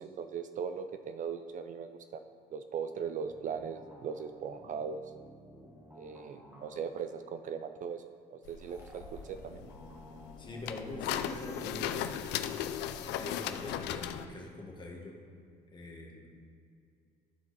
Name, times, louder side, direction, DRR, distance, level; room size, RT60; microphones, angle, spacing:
voice 1, 0.0-2.2 2.5-5.0 5.9-8.0 8.3-9.6, right 6 dB, 50° right, 9 dB, 0.4 m, -39 dB
sound 1, 3.2-7.0 8.7-13.1, equal, 15° right, 1.6 m, -54 dB
sound 2, 8.5-14.3, left 10 dB, 90° left, 0.4 m, -37 dB
voice 2, 10.4-12.0 13.0-15.2 15.7-16.3, left 2 dB, 25° left, 0 dB, 1.6 m, -44 dB
12.5 x 4.5 x 4.1 m, 2.4 s
cardioid pair, 110°, 17 cm